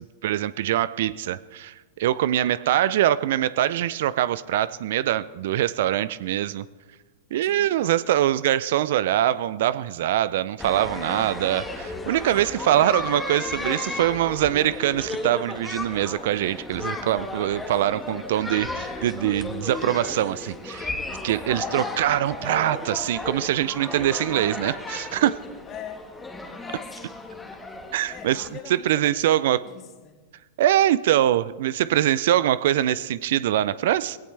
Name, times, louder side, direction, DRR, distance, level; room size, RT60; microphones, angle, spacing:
voice 1, 0.0-6.7 7.3-20.9 21.2-25.4 27.9-28.4 28.7-29.6 30.6-34.2, right 12 dB, 65° right, 17 dB, 0.4 m, -23 dB
voice 2, 7.4-8.0 12.4-12.8 21.5-21.9 25.6-26.0 26.6-27.1 28.0-30.2, left 9 dB, 35° left, 6 dB, 1.8 m, -43 dB
sound 1, 10.6-28.5, left 2 dB, 10° left, 1.4 m, -34 dB
18.5 x 17.0 x 3.3 m, 1.3 s
hypercardioid pair, 105°, 0 cm